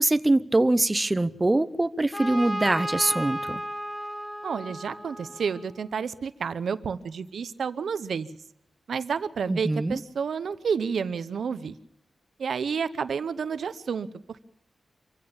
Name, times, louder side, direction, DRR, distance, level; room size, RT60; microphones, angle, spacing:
voice 1, 0.0-3.6 9.5-10.0, right 2 dB, 20° right, 0.7 m, -23 dB
Trumpet, 2.1-5.9, equal, 15° left, 3.7 m, -34 dB
voice 2, 4.4-8.4 8.9-11.7 12.4-14.4, right 6 dB, 80° right, 0.8 m, -30 dB
25.0 x 15.5 x 7.2 m
wide cardioid pair, 100°, 0 cm